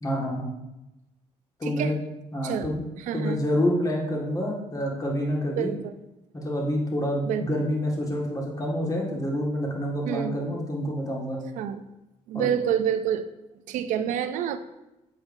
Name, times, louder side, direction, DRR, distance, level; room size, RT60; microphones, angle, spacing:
voice 1, 0.0-0.5 1.6-2.0 2.3-2.8 3.1-5.7 6.3-11.4 12.3-12.5, equal, 25° left, -1 dB, 1.7 m, -27 dB
voice 2, 1.6-1.9 2.4-2.7 3.0-3.4 5.6-6.0 7.2-7.4 10.1-10.4 11.6-11.8 12.3-13.3 13.7-14.6, right 9 dB, 75° right, 11 dB, 0.5 m, -27 dB
7.3 x 5.3 x 2.6 m, 0.97 s
supercardioid pair, 75°, 13 cm